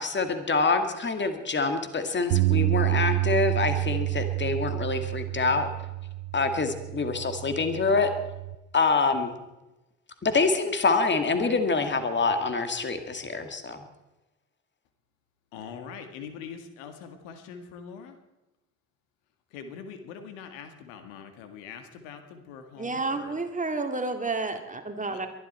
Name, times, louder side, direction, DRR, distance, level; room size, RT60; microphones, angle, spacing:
voice 1, 0.0-5.7 6.3-8.1 8.7-9.4 10.2-13.8, left 4 dB, 30° left, 8 dB, 2.2 m, -26 dB
Bass guitar, 2.3-8.6, right 20 dB, 70° right, 0.8 m, -28 dB
voice 2, 15.5-18.1 19.5-23.4 25.1-25.3, left 6 dB, 70° left, 8 dB, 1.9 m, -43 dB
voice 3, 22.8-25.3, right 3 dB, 20° right, 6 dB, 2.3 m, -30 dB
22.5 x 11.5 x 4.4 m, 1.0 s
hypercardioid pair, 50°, 38 cm